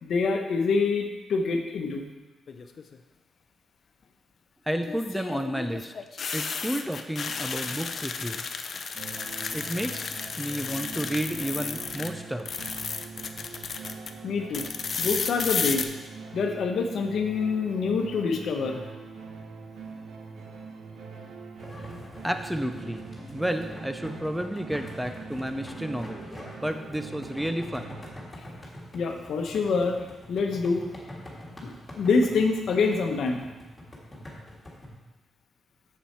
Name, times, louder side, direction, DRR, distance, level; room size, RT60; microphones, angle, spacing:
voice 1, 0.0-2.1 14.2-14.7 15.0-15.9 16.3-18.8 28.9-30.0 30.3-30.8 31.6-33.4, left 4 dB, 70° left, 4 dB, 1.0 m, -26 dB
sound 1, 2.5-3.0 4.8-12.1 12.4-14.1 14.5-15.8, left 5 dB, 50° left, 0.6 m, -33 dB
voice 2, 4.7-5.9 6.3-8.5 9.5-12.5 22.2-26.3 26.6-28.0, equal, 5° right, 7 dB, 0.5 m, -31 dB
sound 2, 8.9-28.1, right 5 dB, 80° right, 1.0 m, -43 dB
sound 3, 21.6-34.9, left 1 dB, 15° left, 2.0 m, -44 dB
7.2 x 7.2 x 4.5 m, 1.1 s
cardioid pair, 120°, 0 cm